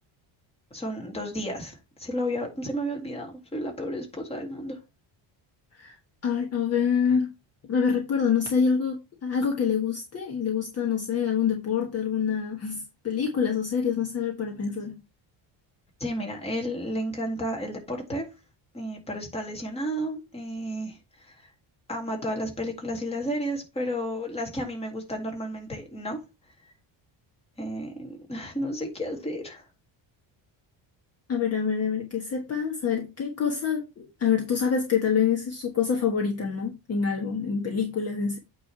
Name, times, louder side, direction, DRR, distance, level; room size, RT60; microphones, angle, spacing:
voice 1, 0.7-4.8 16.0-18.3 18.7-21.5 21.9-26.2 26.6-26.7 27.6-29.7, equal, 15° left, 2.0 m, -32 dB
voice 2, 6.2-7.3 7.6-15.0 31.3-38.4, left 6 dB, 30° left, 1.3 m, -26 dB
8.6 x 3.3 x 5.6 m
cardioid pair, 175°, 46 cm